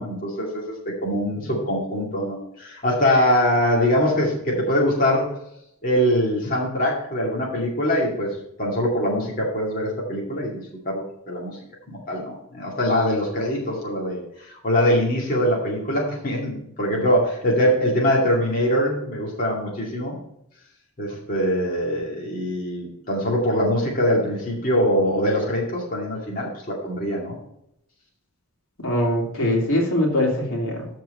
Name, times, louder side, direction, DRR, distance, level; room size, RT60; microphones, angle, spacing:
voice 1, 0.0-5.3 5.8-11.6 11.9-20.2 21.0-27.4, equal, 40° left, -4 dB, 2.3 m, -23 dB
voice 2, 28.8-30.9, left 1 dB, 80° left, -1 dB, 3.0 m, -22 dB
13.0 x 4.7 x 4.4 m, 0.76 s
head